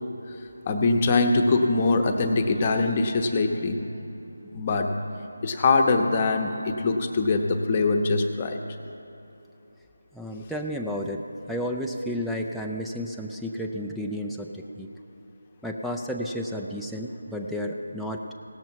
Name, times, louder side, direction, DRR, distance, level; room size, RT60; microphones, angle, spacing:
voice 1, 0.7-3.8 4.4-4.9 5.4-8.6, left 3 dB, 25° left, 4 dB, 0.9 m, -23 dB
voice 2, 10.1-14.9 15.6-18.2, equal, ahead, 0 dB, 0.4 m, -32 dB
17.5 x 7.2 x 4.6 m, 3.0 s
figure-of-eight pair, 165°, 0 cm